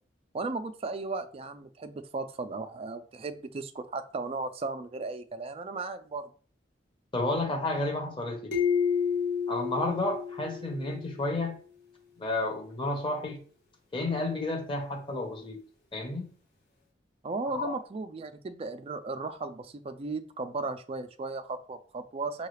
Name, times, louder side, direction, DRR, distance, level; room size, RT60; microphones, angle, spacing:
voice 1, 0.3-6.3 17.2-22.5, right 3 dB, 35° right, 9 dB, 0.4 m, -36 dB
voice 2, 7.1-8.5 9.5-11.6 12.2-13.4 13.9-15.6 15.9-16.3 17.5-17.8, left 2 dB, 30° left, 2 dB, 1.0 m, -31 dB
sound 1, 8.5-11.1, left 7 dB, 65° left, 1.4 m, -29 dB
5.4 x 2.4 x 3.2 m, 0.42 s
head